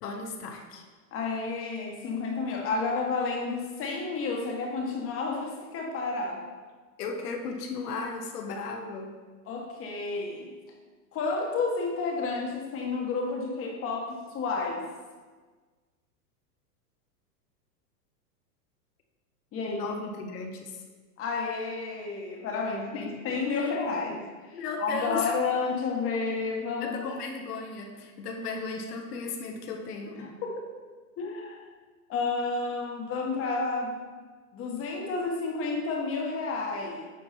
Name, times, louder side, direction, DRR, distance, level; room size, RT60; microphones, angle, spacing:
voice 1, 0.0-0.8 7.0-9.1 19.7-20.8 22.9-23.7 24.5-25.4 26.8-30.3, left 4 dB, 70° left, 2 dB, 1.2 m, -36 dB
voice 2, 1.1-6.4 9.5-10.5 11.1-14.8 19.5-19.9 21.2-27.0 30.1-30.7 31.2-31.6 32.1-34.0 34.5-37.1, left 4 dB, 30° left, 0 dB, 1.4 m, -31 dB
8.5 x 4.5 x 4.3 m, 1.4 s
hypercardioid pair, 130°, 47 cm